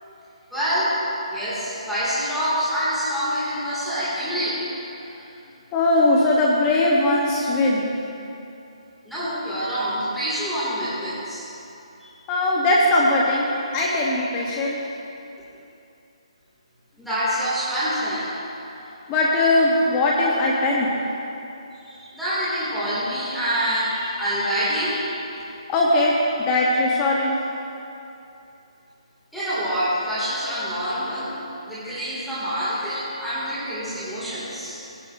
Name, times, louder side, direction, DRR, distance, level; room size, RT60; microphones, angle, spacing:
voice 1, 0.5-1.0 1.3-4.6 9.0-11.4 12.0-12.1 17.0-18.3 21.9-25.1 29.3-31.3 31.7-34.8, equal, ahead, -14 dB, 2.3 m, -26 dB
voice 2, 5.7-7.9 12.3-14.8 19.1-20.9 25.7-27.3, left 2 dB, 15° left, -4 dB, 0.9 m, -20 dB
19.0 x 10.0 x 2.6 m, 2.8 s
hypercardioid pair, 165°, 3 cm